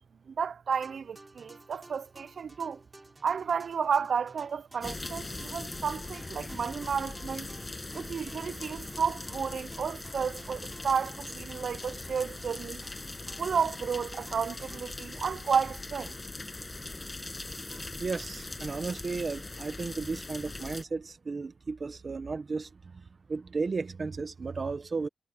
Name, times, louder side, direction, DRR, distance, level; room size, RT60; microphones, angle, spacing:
voice 1, 0.3-2.8 3.2-7.5 7.9-12.8 13.4-16.1 17.7-17.8, right 6 dB, 60° right, 0.3 m, -32 dB
sound 1, 0.7-16.1, right 2 dB, 20° right, 3.8 m, -54 dB
sound 2, 4.8-20.8, left 2 dB, 20° left, 6.2 m, -41 dB
voice 2, 18.0-25.1, right 4 dB, 40° right, 0.9 m, -34 dB
wide cardioid pair, 130°, 0 cm